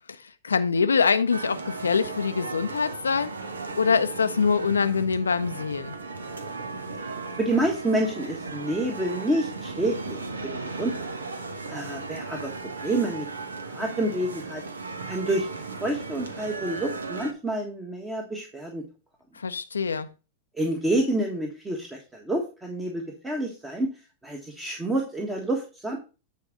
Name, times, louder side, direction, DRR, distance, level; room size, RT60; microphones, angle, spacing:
voice 1, 0.2-3.3 3.8-5.9 19.4-20.1, left 5 dB, 80° left, 0.5 m, -24 dB
sound 1, 1.3-17.3, right 3 dB, 80° right, 1.1 m, -36 dB
voice 2, 7.4-11.1 11.7-12.5 12.8-13.3 13.7-14.6 15.0-15.5 15.8-18.8 20.5-23.9 24.2-26.0, right 1 dB, 10° right, 1.5 m, -28 dB
9.3 x 4.4 x 5.0 m
figure-of-eight pair, 100°, 0 cm